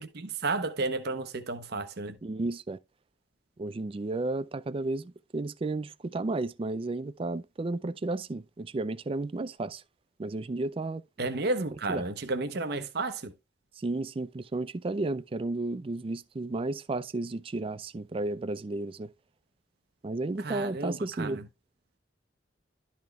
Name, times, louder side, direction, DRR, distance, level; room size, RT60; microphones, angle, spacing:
voice 1, 0.0-2.2 11.2-13.3 20.4-21.4, right 3 dB, 60° right, 0.8 m, -32 dB
voice 2, 2.2-2.8 3.6-9.8 10.2-11.0 11.9-12.1 13.8-19.1 20.0-21.4, right 2 dB, 30° right, 0.4 m, -33 dB
12.0 x 4.2 x 3.2 m
head